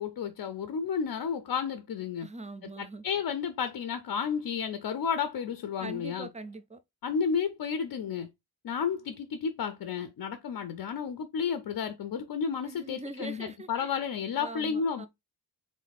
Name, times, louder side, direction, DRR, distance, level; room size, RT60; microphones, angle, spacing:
voice 1, 0.0-2.3 2.8-6.3 7.0-8.3 8.6-15.1, left 6 dB, 65° left, 0.6 m, -32 dB
voice 2, 2.2-3.0 5.8-6.8 12.6-13.9 14.4-15.1, right 2 dB, 20° right, 0.3 m, -42 dB
3.8 x 3.1 x 4.1 m
wide cardioid pair, 150°, 41 cm